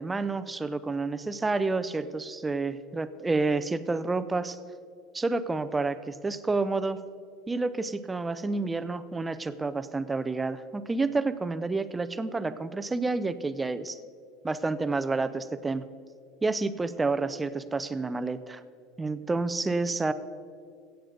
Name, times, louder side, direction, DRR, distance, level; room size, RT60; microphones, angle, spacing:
voice 1, 0.0-4.6 5.1-7.0 7.5-14.0 14.4-15.9 16.4-18.6 19.0-20.1, right 3 dB, 15° right, 13 dB, 0.5 m, -29 dB
16.0 x 8.0 x 5.2 m, 2.1 s
supercardioid pair, 120°, 0 cm